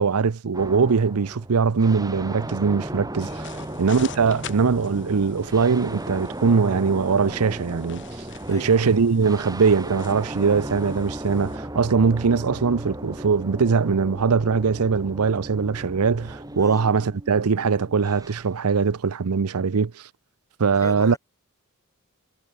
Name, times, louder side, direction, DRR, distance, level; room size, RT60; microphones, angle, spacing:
voice 1, 0.0-8.0 8.5-20.0 20.6-21.1, right 5 dB, 80° right, 0.6 m, -21 dB
sound 1, 0.5-18.6, right 1 dB, 15° right, 2.8 m, -36 dB
sound 2, 3.2-11.6, left 8 dB, 55° left, 2.9 m, -45 dB
voice 2, 3.5-3.9 8.4-8.7 16.5-16.9 20.7-21.2, left 1 dB, 15° left, 7.1 m, -41 dB
head